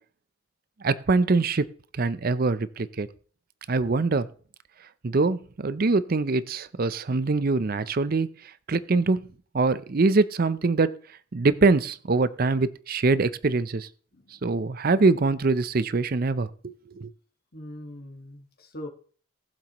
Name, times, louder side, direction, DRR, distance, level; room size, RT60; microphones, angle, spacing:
voice 1, 0.8-1.7 2.0-3.1 3.7-4.3 5.0-8.3 8.7-9.2 9.5-10.9 11.3-13.9 14.4-17.1, right 3 dB, 45° right, 15 dB, 0.5 m, -23 dB
voice 2, 14.1-14.6 17.5-18.9, left 1 dB, 50° left, 3 dB, 1.6 m, -42 dB
19.5 x 7.5 x 3.0 m, 0.43 s
head